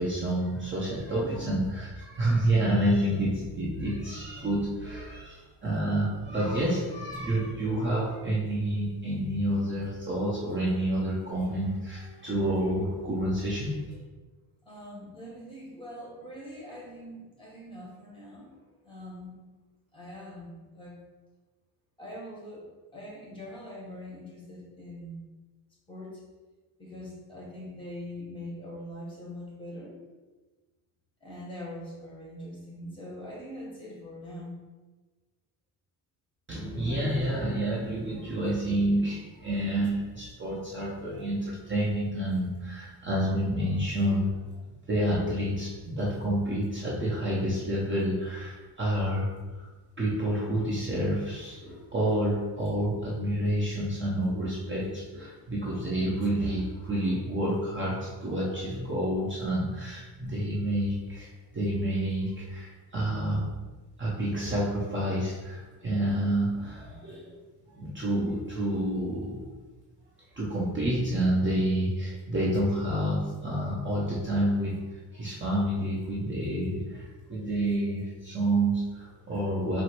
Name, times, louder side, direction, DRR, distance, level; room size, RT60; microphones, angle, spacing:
voice 1, 0.0-14.0 36.5-44.3 44.9-49.7 50.0-63.5 64.0-67.4 67.8-69.4 70.3-74.8 75.1-79.8, right 1 dB, 25° right, -5 dB, 0.8 m, -29 dB
voice 2, 1.2-1.6 14.6-19.3 19.9-21.0 22.0-25.3 25.9-26.2 26.8-30.0 31.2-34.6, equal, 10° left, -4 dB, 1.3 m, -43 dB
4.5 x 2.1 x 4.5 m, 1.2 s
cardioid pair, 125°, 44 cm